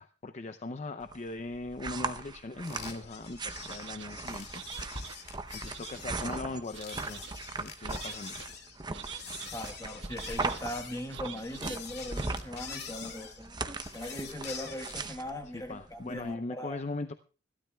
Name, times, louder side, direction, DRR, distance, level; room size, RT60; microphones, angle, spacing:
voice 1, 0.0-7.3 7.6-8.4 13.0-13.1 15.5-17.1, left 2 dB, 40° left, 9 dB, 0.6 m, -40 dB
sound 1, 1.0-16.3, right 3 dB, 25° right, 0.7 m, -39 dB
sound 2, 2.6-15.1, left 6 dB, 60° left, 2.4 m, -45 dB
sound 3, 3.6-4.1 4.5-5.2 5.6-6.3 6.7-7.3 7.8-8.5 8.9-9.5 10.0-10.6 11.1-11.8 12.1-12.3, right 8 dB, 85° right, 1.2 m, -46 dB
voice 2, 9.5-13.5 13.9-16.8, left 1 dB, 20° left, 5 dB, 1.3 m, -40 dB
25.5 x 12.5 x 2.3 m, 0.36 s
head